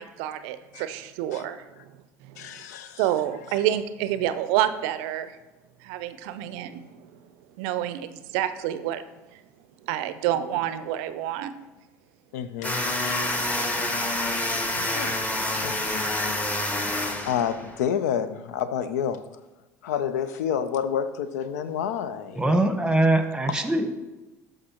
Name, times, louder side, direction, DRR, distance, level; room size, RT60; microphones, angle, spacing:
voice 1, 0.0-1.7 2.2-2.3 3.0-5.3 5.8-7.1 7.6-9.0 9.8-11.5 13.7-14.0, right 12 dB, 70° right, 12 dB, 0.5 m, -28 dB
voice 2, 2.4-3.1 12.3-12.8 14.7-15.1 15.6-15.8 16.6-16.8 17.2-19.2 19.8-22.6 23.5-23.6, left 8 dB, 80° left, 13 dB, 0.5 m, -29 dB
sound 1, 12.6-17.8, left 1 dB, 15° left, 1.4 m, -27 dB
voice 3, 22.3-23.9, right 2 dB, 10° right, 7 dB, 1.1 m, -22 dB
12.0 x 5.1 x 2.9 m, 1.1 s
hypercardioid pair, 70°, 9 cm